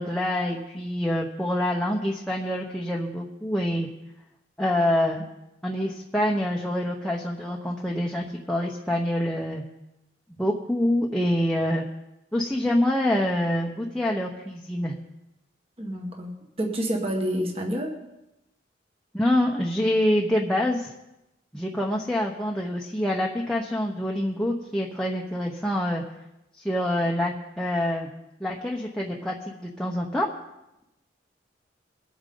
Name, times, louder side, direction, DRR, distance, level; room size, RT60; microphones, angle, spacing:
voice 1, 0.0-3.9 4.6-5.3 5.6-9.6 10.4-11.9 12.3-15.0 19.1-20.9 21.5-26.0 26.6-28.1 28.4-30.3, left 1 dB, 5° left, -2 dB, 1.0 m, -26 dB
voice 2, 15.8-18.0, equal, 30° right, 1 dB, 1.8 m, -29 dB
22.5 x 8.7 x 3.9 m, 0.91 s
head